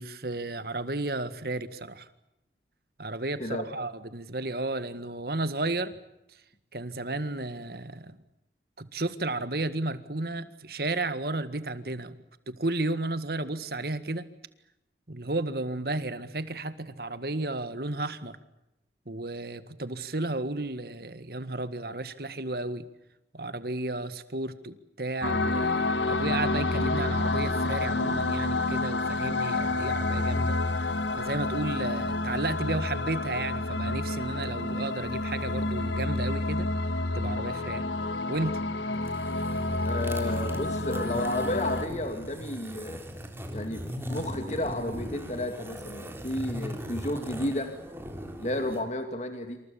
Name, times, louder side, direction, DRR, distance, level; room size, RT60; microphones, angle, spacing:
voice 1, 0.0-2.1 3.0-5.9 6.7-8.2 8.8-12.2 12.5-14.3 15.1-18.4 19.1-22.8 23.3-30.9 31.2-36.7 37.1-37.9 38.3-38.6, right 2 dB, 55° right, 12 dB, 1.8 m, -33 dB
sound 1, 25.2-41.9, left 2 dB, 85° left, 1.5 m, -29 dB
sound 2, 38.9-48.8, equal, 15° right, 3.8 m, -39 dB
voice 2, 39.9-43.0 43.5-47.7 48.4-49.6, left 1 dB, 40° left, 6 dB, 2.6 m, -32 dB
28.0 x 27.0 x 7.1 m, 0.88 s
head